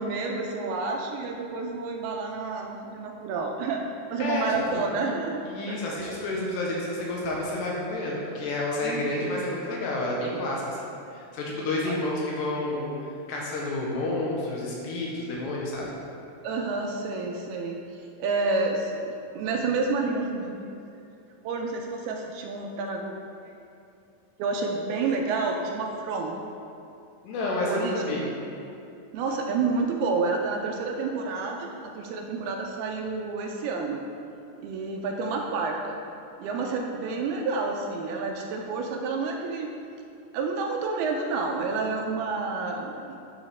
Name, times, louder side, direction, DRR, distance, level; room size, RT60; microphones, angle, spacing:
voice 1, 0.0-3.8 4.1-5.8 8.8-9.4 11.9-12.0 16.4-20.8 21.4-23.1 23.4-23.6 24.4-26.4 27.7-28.2 29.1-34.0 34.6-36.0 36.4-39.7 40.3-43.2, right 3 dB, 80° right, 1 dB, 2.4 m, -29 dB
voice 2, 5.5-12.9 13.3-15.9 27.2-28.3, left 2 dB, 85° left, -3 dB, 3.3 m, -30 dB
10.5 x 8.0 x 3.5 m, 2.6 s
omnidirectional pair, 4.8 m